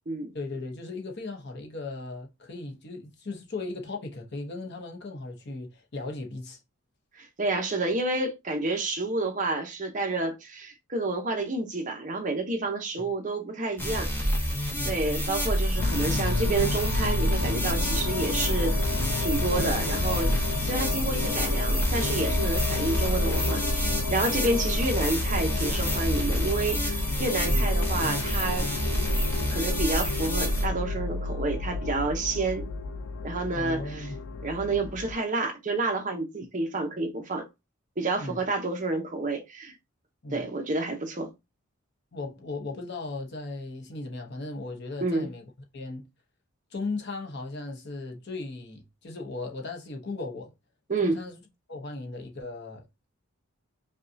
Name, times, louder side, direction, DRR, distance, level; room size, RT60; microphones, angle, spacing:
voice 1, 0.3-6.6 13.0-13.1 14.8-15.0 19.5-19.7 27.4-27.7 33.5-34.2 38.2-38.4 40.2-40.5 42.1-45.4 45.7-46.0 46.7-50.5 51.0-51.4 51.7-52.8, left 2 dB, 50° left, 0.8 m, -37 dB
voice 2, 7.2-14.3 14.9-18.8 19.2-20.3 20.6-28.9 29.5-32.7 33.2-34.1 34.4-37.5 38.0-39.7 40.3-41.3 45.0-45.3 50.9-51.2, right 2 dB, 35° right, 0.7 m, -29 dB
sound 1, 13.8-30.7, equal, 10° left, 0.8 m, -28 dB
sound 2, 15.8-35.1, left 3 dB, 70° left, 0.4 m, -32 dB
5.2 x 2.3 x 2.6 m
head